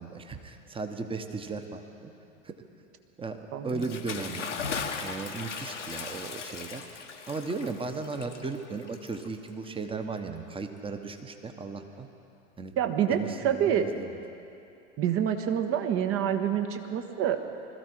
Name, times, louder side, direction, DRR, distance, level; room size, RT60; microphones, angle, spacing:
voice 1, 0.0-2.1 2.4-2.6 3.2-4.5 5.0-6.8 7.3-12.1 12.6-12.7 13.1-14.2, right 4 dB, 15° right, 7 dB, 1.2 m, -36 dB
voice 2, 3.5-3.8 12.8-13.8 15.0-17.4, right 9 dB, 40° right, 7 dB, 1.3 m, -27 dB
Bathtub (filling or washing) / Splash splatter, 3.7-9.6, left 5 dB, 80° left, 1.2 m, -38 dB
21.0 x 14.0 x 4.7 m, 2.7 s
figure-of-eight pair, 80°, 35 cm